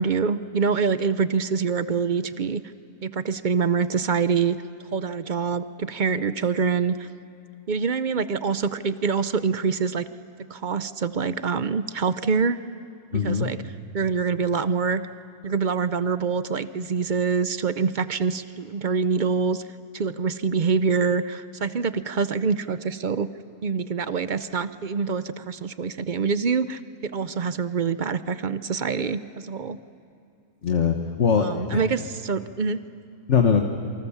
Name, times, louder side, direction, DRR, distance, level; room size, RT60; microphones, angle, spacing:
voice 1, 0.0-2.6 3.0-4.6 4.9-7.1 7.7-10.1 10.5-12.6 13.1-13.6 13.9-15.0 15.4-19.6 19.9-23.3 23.6-29.8 31.4-32.8, right 5 dB, 55° right, 13 dB, 0.5 m, -25 dB
voice 2, 13.1-13.5 30.6-31.9 33.3-33.6, left 6 dB, 50° left, 4 dB, 1.5 m, -21 dB
28.0 x 24.5 x 7.2 m, 2.5 s
omnidirectional pair, 1.6 m